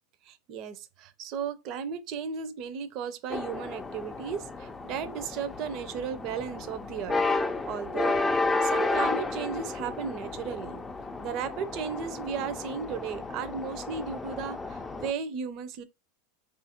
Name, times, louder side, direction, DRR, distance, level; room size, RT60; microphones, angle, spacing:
voice 1, 0.2-8.2 8.6-10.8 11.2-15.8, right 7 dB, 45° right, 0.5 m, -35 dB
sound 1, 3.3-15.1, left 3 dB, 10° left, 0.3 m, -32 dB
3.7 x 2.4 x 2.8 m
supercardioid pair, 125°, 0 cm